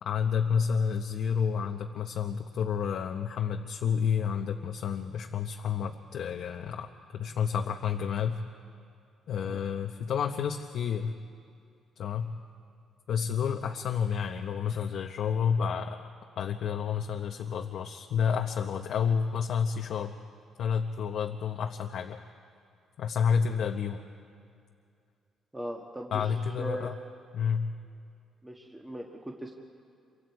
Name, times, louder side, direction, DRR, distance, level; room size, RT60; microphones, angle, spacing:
voice 1, 0.0-8.4 9.3-11.1 12.0-12.3 13.1-16.1 16.4-20.1 20.6-22.2 23.0-24.0 26.1-26.9 27.3-27.7, left 7 dB, 65° left, 3 dB, 0.8 m, -30 dB
voice 2, 25.5-26.9 28.4-29.5, right 1 dB, 10° right, 0 dB, 1.5 m, -39 dB
27.5 x 24.5 x 4.7 m, 2.4 s
cardioid pair, 125°, 0 cm